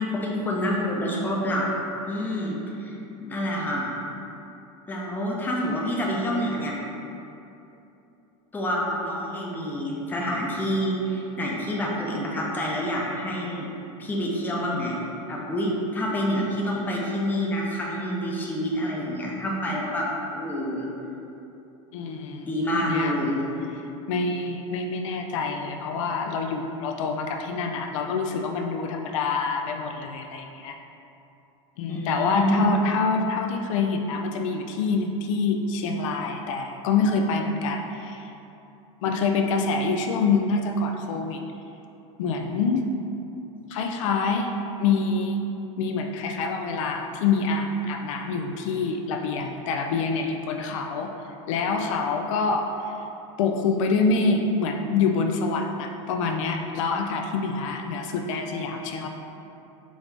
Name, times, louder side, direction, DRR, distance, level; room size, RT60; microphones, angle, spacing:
voice 1, 0.0-1.7 2.1-3.9 4.9-6.8 8.5-13.7 14.0-15.0 15.3-20.0 20.3-20.9 22.4-23.5 31.9-32.8, equal, 10° left, -3 dB, 0.6 m, -27 dB
voice 2, 21.9-22.5 22.8-23.2 24.1-30.8 31.8-38.2 39.0-41.4 42.2-42.9 43.7-44.5 44.8-51.1 51.5-52.9 53.4-59.1, left 4 dB, 75° left, 3 dB, 0.4 m, -26 dB
4.7 x 2.6 x 3.3 m, 2.9 s
supercardioid pair, 135°, 16 cm